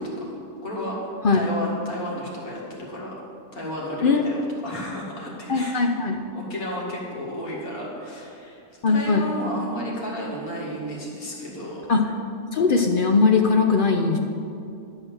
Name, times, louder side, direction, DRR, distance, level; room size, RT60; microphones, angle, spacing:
voice 1, 0.2-3.1 3.5-5.8 6.3-11.8, equal, 85° left, -4 dB, 2.4 m, -33 dB
voice 2, 5.5-6.2 8.8-9.3 11.9-12.1 12.5-14.2, left 4 dB, 60° left, 3 dB, 0.5 m, -20 dB
10.5 x 4.1 x 7.6 m, 2.6 s
omnidirectional pair, 1.5 m